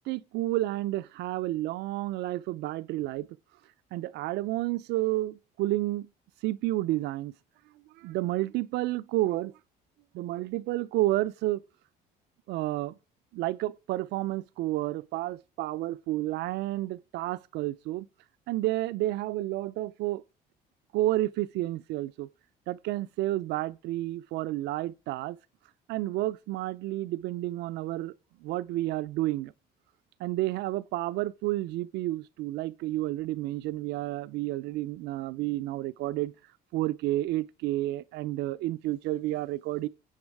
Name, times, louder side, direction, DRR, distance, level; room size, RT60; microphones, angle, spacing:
voice 1, 0.1-3.3 3.9-6.1 6.4-7.3 8.0-9.5 10.1-11.6 12.5-13.0 13.3-18.1 18.5-20.2 20.9-22.3 22.7-25.4 25.9-28.1 28.4-29.5 30.2-36.3 36.7-39.9, right 16 dB, 85° right, 0.6 m, -30 dB
16.0 x 7.9 x 4.7 m
cardioid pair, 110°, 17 cm